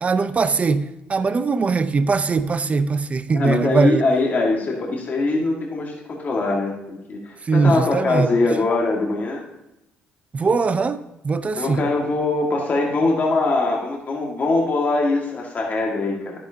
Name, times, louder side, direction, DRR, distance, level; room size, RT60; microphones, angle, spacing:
voice 1, 0.0-4.0 7.5-8.3 10.3-11.8, right 4 dB, 35° right, 0.6 m, -21 dB
voice 2, 3.3-9.4 11.6-16.3, left 2 dB, 45° left, 1.8 m, -22 dB
10.5 x 9.4 x 2.8 m
supercardioid pair, 70°, 4 cm